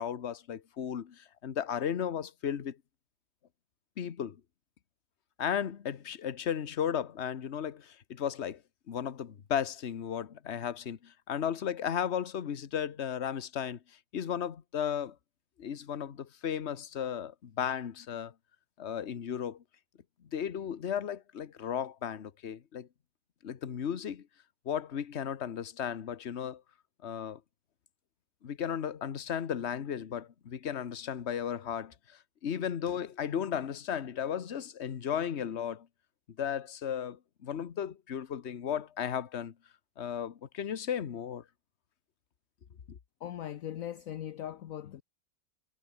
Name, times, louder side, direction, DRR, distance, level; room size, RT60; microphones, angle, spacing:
voice 1, 0.0-2.8 4.0-4.4 5.4-8.6 8.9-13.8 14.1-15.1 15.6-18.3 18.8-19.6 20.3-22.9 23.4-24.2 24.6-26.6 27.0-27.4 28.4-35.9 36.4-39.5 40.0-41.4 42.9-43.0, left 8 dB, 50° left, 1.3 m, -35 dB
voice 2, 43.2-45.0, left 11 dB, 65° left, 1.2 m, -39 dB
omnidirectional pair, 1.6 m